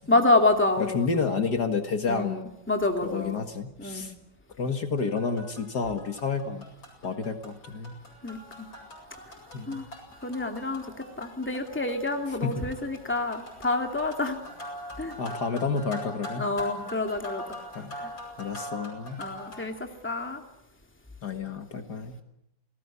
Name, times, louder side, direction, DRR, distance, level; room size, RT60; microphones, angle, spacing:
voice 1, 0.1-1.3 2.1-3.4 3.8-4.1 8.2-8.7 9.7-9.9 10.2-14.4 15.0-15.2 16.4-17.4 18.0-18.1 19.2-20.4, left 2 dB, 5° left, 4 dB, 2.4 m, -27 dB
voice 2, 0.8-2.4 3.0-4.1 4.6-6.6 7.0-8.0 9.5-9.8 12.4-12.7 15.2-16.5 17.8-17.9 18.4-19.2 21.2-22.2, left 5 dB, 55° left, 6 dB, 2.3 m, -30 dB
sound 1, 5.0-19.7, equal, 80° left, 8.5 m, -43 dB
29.5 x 19.0 x 8.4 m, 0.87 s
omnidirectional pair, 2.1 m